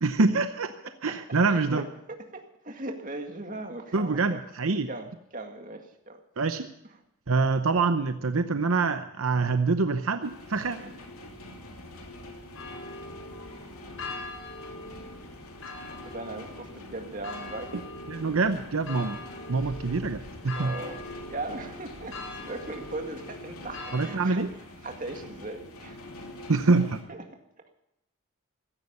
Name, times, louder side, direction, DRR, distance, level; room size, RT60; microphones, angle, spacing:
voice 1, 0.0-1.8 3.9-4.9 6.4-6.7 7.3-10.8 18.1-19.2 19.5-20.7 23.9-24.5 26.5-27.0, right 3 dB, 70° right, 9 dB, 0.8 m, -25 dB
voice 2, 0.8-1.2 1.5-1.8 2.1-4.4 4.9-6.2 10.8-10.9 16.0-17.8 20.5-24.5 24.8-26.0 27.1-27.2 27.6-27.7, right 2 dB, 35° right, 4 dB, 2.0 m, -39 dB
sound 1, 10.2-27.0, left 1 dB, 85° left, 3.2 m, -45 dB
sound 2, 12.5-24.1, left 2 dB, 70° left, 5.7 m, -42 dB
16.5 x 14.0 x 5.5 m, 0.80 s
head